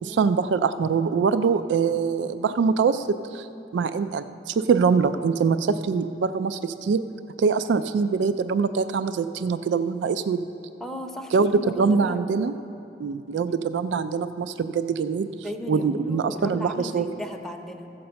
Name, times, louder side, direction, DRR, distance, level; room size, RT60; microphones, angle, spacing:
voice 1, 0.0-3.5 3.7-7.0 7.4-10.5 11.3-11.5 11.8-12.5 13.0-15.3 15.7-17.1, right 5 dB, 80° right, 12 dB, 0.3 m, -23 dB
voice 2, 10.8-12.2 15.4-17.9, equal, ahead, 3 dB, 0.6 m, -36 dB
15.0 x 5.3 x 6.8 m, 2.8 s
head